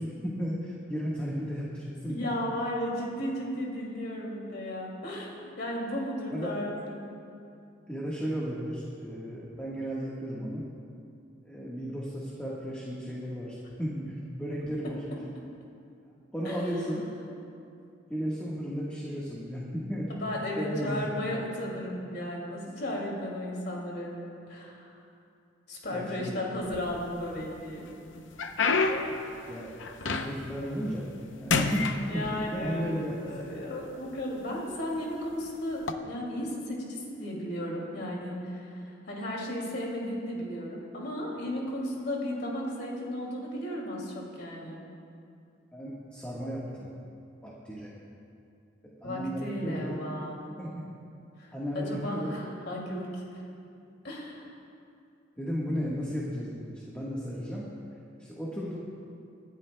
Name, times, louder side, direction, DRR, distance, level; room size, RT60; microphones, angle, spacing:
voice 1, 0.0-2.3 6.3-6.5 7.9-10.7 11.4-15.0 16.3-17.1 18.1-20.1 20.5-21.1 25.9-26.4 29.5-29.7 30.0-31.1 31.4-33.4 45.7-46.9 47.4-47.9 49.0-50.0 50.6-50.8 51.5-52.3 55.4-57.7 58.2-58.8, equal, 5° left, -6 dB, 1.4 m, -34 dB
voice 2, 2.1-7.0 16.4-16.6 20.1-24.9 25.7-27.9 32.1-44.8 49.0-50.4 51.4-53.4 54.0-54.5, left 1 dB, 65° left, -2 dB, 2.4 m, -35 dB
sound 1, 26.6-27.4 27.9-30.6 31.0-31.2 31.5-32.7 33.5-33.6 34.3-34.6 35.7-35.9, left 4 dB, 85° left, 0.7 m, -29 dB
25.5 x 11.0 x 2.2 m, 2.5 s
head